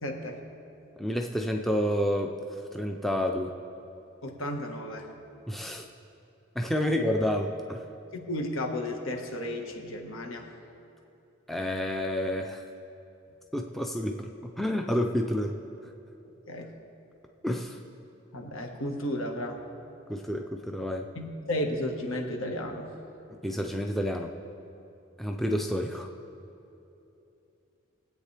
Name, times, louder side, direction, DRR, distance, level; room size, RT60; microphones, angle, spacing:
voice 1, 0.0-0.4 4.2-5.1 8.1-10.5 16.5-16.7 18.3-19.6 21.1-22.9, left 1 dB, 75° left, 2 dB, 1.4 m, -33 dB
voice 2, 1.0-2.4 2.7-3.6 5.5-5.9 6.6-7.9 11.5-12.6 13.5-15.6 17.4-17.8 20.1-21.1 23.4-24.3 25.2-26.1, equal, ahead, 2 dB, 0.4 m, -29 dB
22.0 x 8.3 x 3.3 m, 2.9 s
head